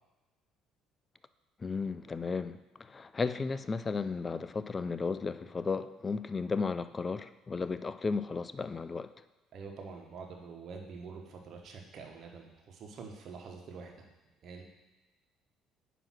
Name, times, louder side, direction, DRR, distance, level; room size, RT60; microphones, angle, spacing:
voice 1, 1.6-9.1, left 4 dB, 30° left, 13 dB, 0.4 m, -34 dB
voice 2, 9.5-14.1 14.4-14.6, right 4 dB, 50° right, 1 dB, 1.3 m, -46 dB
9.1 x 3.0 x 6.1 m, 1.2 s
hypercardioid pair, 55°, 0 cm